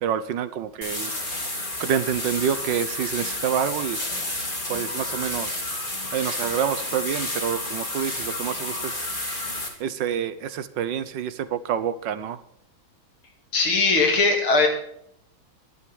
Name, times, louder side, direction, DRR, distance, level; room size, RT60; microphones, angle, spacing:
voice 1, 0.0-1.1 1.8-4.0 4.7-5.6 6.1-9.1 9.8-12.4, right 9 dB, 70° right, 14 dB, 1.4 m, -27 dB
sound 1, 0.8-9.7, left 1 dB, 25° left, 2.9 m, -30 dB
voice 2, 13.5-14.7, left 3 dB, 90° left, 3 dB, 3.4 m, -19 dB
11.5 x 11.0 x 7.1 m, 0.70 s
omnidirectional pair, 2.2 m